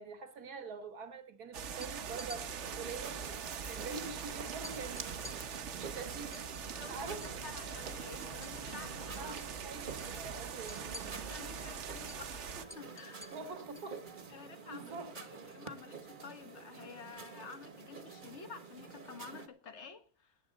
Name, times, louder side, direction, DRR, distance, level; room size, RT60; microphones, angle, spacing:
voice 1, 0.0-3.2 3.7-5.3 5.8-6.4 6.8-7.3 9.2-11.2 13.3-14.1 14.7-15.1, right 4 dB, 80° right, 2.0 m, -45 dB
sound 1, 1.5-12.6, right 7 dB, 55° right, 1.1 m, -43 dB
sound 2, 1.8-2.4 3.8-3.9 4.2-4.3 4.6-7.4 7.7-8.9 9.2-9.5 9.8-13.9, left 2 dB, 20° left, 0.6 m, -52 dB
sound 3, 2.1-19.5, right 5 dB, 35° right, 1.2 m, -48 dB
voice 2, 6.7-7.2 7.4-9.4 11.2-13.3 14.3-20.4, left 5 dB, 50° left, 1.6 m, -51 dB
18.0 x 8.8 x 4.0 m
omnidirectional pair, 1.6 m